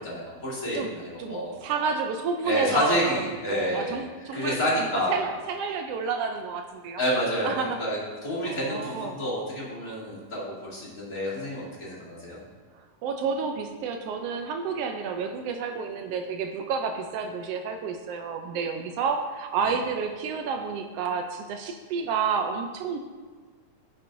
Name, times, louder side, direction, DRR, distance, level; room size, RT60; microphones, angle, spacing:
voice 1, 0.0-1.5 2.4-4.0 4.3-5.2 7.0-12.4 19.6-19.8, equal, 30° left, -8 dB, 2.7 m, -29 dB
voice 2, 1.2-3.2 3.5-7.0 7.4-7.8 8.4-9.2 13.0-23.0, right 5 dB, 90° right, 4 dB, 1.3 m, -30 dB
15.5 x 6.1 x 2.6 m, 1.4 s
omnidirectional pair, 3.4 m